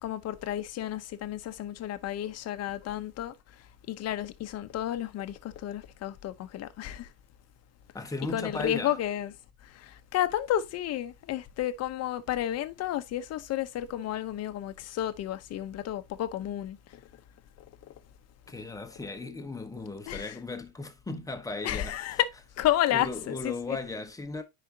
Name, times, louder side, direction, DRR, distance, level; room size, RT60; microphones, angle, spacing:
voice 1, 0.0-7.1 8.3-9.3 9.6-17.0 20.1-20.3 21.6-22.3 22.6-23.8, left 12 dB, 35° left, 0.9 m, -32 dB
voice 2, 7.9-9.0 18.5-22.2 22.9-24.4, left 3 dB, 10° left, 1.0 m, -37 dB
9.8 x 5.0 x 2.8 m
supercardioid pair, 135°, 43 cm